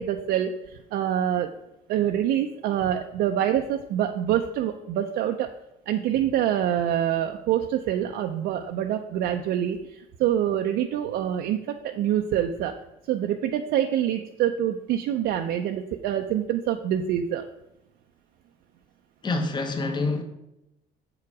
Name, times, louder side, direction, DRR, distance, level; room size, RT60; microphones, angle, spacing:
voice 1, 0.0-1.5 1.9-5.5 5.9-12.7 13.1-17.4, right 10 dB, 75° right, 0.5 m, -26 dB
voice 2, 19.2-20.2, left 3 dB, 25° left, 1.0 m, -26 dB
7.2 x 4.9 x 4.7 m
cardioid pair, 110°, 17 cm